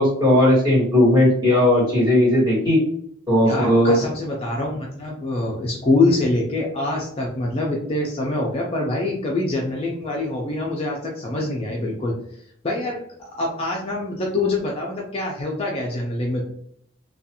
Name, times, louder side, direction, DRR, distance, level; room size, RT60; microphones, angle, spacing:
voice 1, 0.0-2.8 3.3-4.0, left 1 dB, 20° right, -8 dB, 1.3 m, -17 dB
voice 2, 3.5-12.1 12.6-16.4, left 2 dB, 25° left, -2 dB, 0.4 m, -25 dB
2.4 x 2.3 x 2.8 m, 0.67 s
head